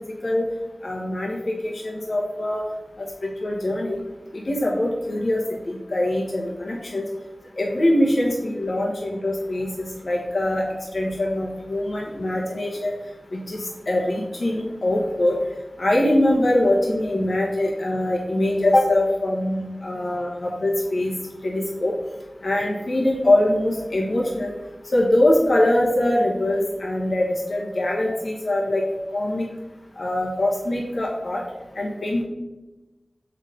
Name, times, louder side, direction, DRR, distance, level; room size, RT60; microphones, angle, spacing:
voice 1, 0.8-2.6 3.0-4.0 4.3-5.4 5.7-7.1 7.6-10.7 10.9-12.9 13.3-15.4 15.8-21.1 21.4-21.9 22.4-24.5 24.9-28.8 29.1-29.4 29.9-31.4 31.7-32.2, left 1 dB, 80° left, -3 dB, 1.3 m, -23 dB
7.1 x 4.6 x 5.2 m, 1.1 s
wide cardioid pair, 40°, 0 cm